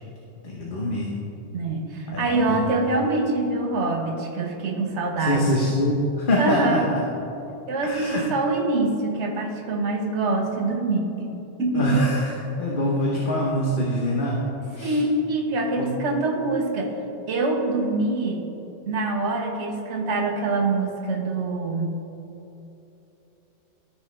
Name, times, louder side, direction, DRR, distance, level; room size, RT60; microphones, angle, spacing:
voice 1, 0.4-1.1 2.1-2.7 5.2-7.0 7.8-8.2 11.7-12.3 12.6-14.4 14.7-15.0 15.7-15.9, equal, 50° left, -3 dB, 1.1 m, -24 dB
voice 2, 1.5-5.5 6.4-6.9 7.7-11.3 11.6-12.1 14.6-16.9 17.3-18.4 18.9-21.9, right 2 dB, 75° right, 2 dB, 1.3 m, -25 dB
13.0 x 6.0 x 3.3 m, 3.0 s
omnidirectional pair, 1.2 m